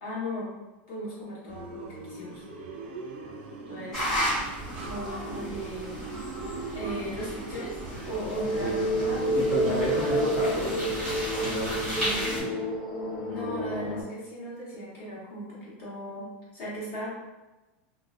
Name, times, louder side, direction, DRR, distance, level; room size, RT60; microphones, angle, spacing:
voice 1, 0.0-0.5 0.9-2.4 3.7-4.2 4.9-6.0 6.7-7.7 8.0-10.2 13.3-16.3 16.5-17.1, equal, 40° left, -7 dB, 0.9 m, -38 dB
sound 1, 1.5-11.1, right 3 dB, 65° right, 0.4 m, -40 dB
sound 2, 3.9-12.4, equal, 5° left, 1.0 m, -34 dB
sound 3, 8.1-14.0, right 1 dB, 75° left, 0.7 m, -29 dB
voice 2, 9.3-12.6, left 1 dB, 20° left, -11 dB, 0.6 m, -32 dB
2.5 x 2.1 x 2.4 m, 1.1 s
supercardioid pair, 175°, 6 cm